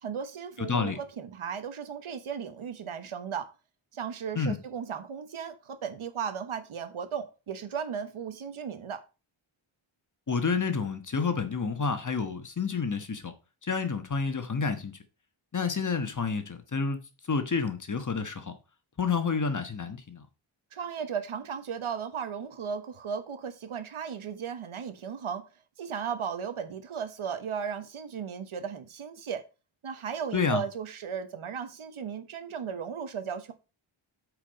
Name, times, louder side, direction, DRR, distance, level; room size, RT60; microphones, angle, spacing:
voice 1, 0.0-3.5 3.9-9.0 20.7-25.4 25.8-29.4 29.8-33.5, right 7 dB, 80° right, 1.3 m, -36 dB
voice 2, 10.3-13.3 13.7-14.9 15.5-17.0 17.3-18.5 19.0-20.2 30.3-30.6, left 5 dB, 40° left, 1.3 m, -29 dB
8.4 x 4.9 x 5.3 m
wide cardioid pair, 100°, 49 cm